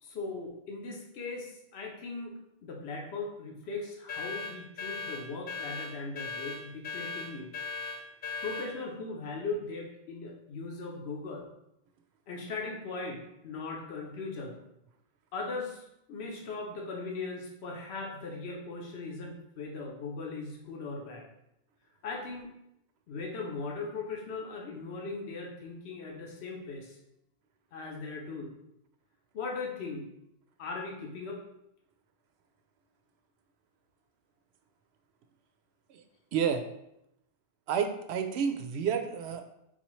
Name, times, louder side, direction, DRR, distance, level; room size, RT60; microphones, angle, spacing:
voice 1, 0.0-2.3 2.6-7.5 8.4-11.5 12.3-14.6 15.3-21.2 22.0-22.5 23.1-27.0 27.7-28.5 29.3-30.1 30.6-31.4, left 3 dB, 80° left, 0 dB, 1.0 m, -39 dB
sound 1, 4.1-8.7, left 4 dB, 55° left, 0.8 m, -38 dB
voice 2, 36.3-36.6 37.7-39.4, right 7 dB, 85° right, 6 dB, 0.8 m, -30 dB
4.2 x 4.1 x 3.0 m, 0.82 s
omnidirectional pair, 1.1 m